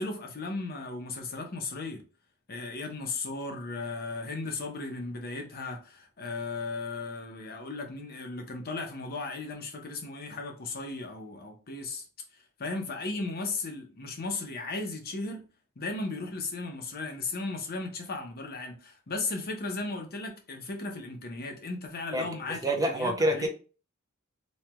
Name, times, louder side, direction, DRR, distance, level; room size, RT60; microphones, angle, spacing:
voice 1, 0.0-2.0 2.5-12.0 12.6-15.4 15.8-23.5, left 3 dB, 45° left, 0.7 m, -36 dB
voice 2, 22.1-23.5, right 1 dB, 15° right, 0.4 m, -28 dB
3.2 x 2.2 x 2.9 m
head